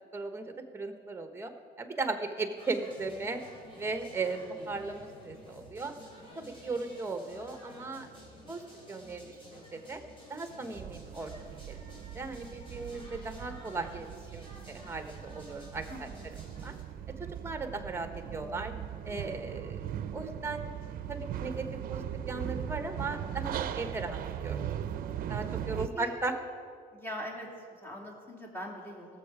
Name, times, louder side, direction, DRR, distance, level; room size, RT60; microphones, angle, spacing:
voice 1, 0.1-1.5 1.8-3.4 3.8-4.4 4.7-5.9 6.3-8.1 8.5-10.0 10.3-16.1 16.6-16.7 17.4-18.7 19.0-20.7 21.1-24.6 25.3-26.3, right 3 dB, 15° right, 7 dB, 1.2 m, -37 dB
sound 1, 2.6-16.8, equal, 30° left, 3.8 m, -52 dB
voice 2, 4.4-4.9 15.9-16.4 25.9-26.1 26.9-29.2, equal, 15° left, -2 dB, 2.7 m, -43 dB
sound 2, 10.7-25.9, right 10 dB, 60° right, 0.6 m, -39 dB
18.0 x 7.4 x 4.8 m, 2.1 s
cardioid pair, 110°, 17 cm